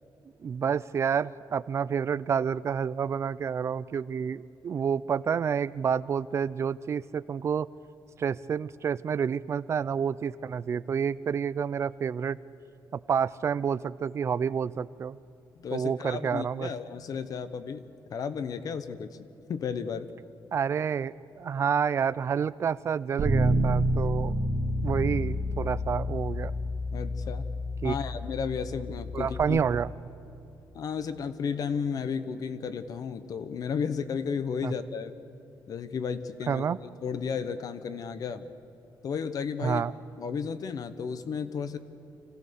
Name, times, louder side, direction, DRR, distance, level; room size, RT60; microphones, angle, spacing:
voice 1, 0.4-7.7 8.2-12.4 12.9-15.2 15.7-16.7 20.5-24.3 24.8-26.5 27.8-27.9 29.1-29.9 34.6-34.7 36.5-36.8 39.6-39.9, right 7 dB, 35° right, 17 dB, 0.4 m, -29 dB
voice 2, 15.5-20.1 26.9-27.4 27.8-29.6 30.7-35.1 35.7-36.6 37.0-38.5 39.0-39.8 40.2-41.8, left 6 dB, 50° left, 12 dB, 0.8 m, -33 dB
Bass guitar, 23.2-29.4, equal, 60° right, 2.6 m, -29 dB
26.0 x 16.0 x 6.9 m, 2.9 s
wide cardioid pair, 175°, 8 cm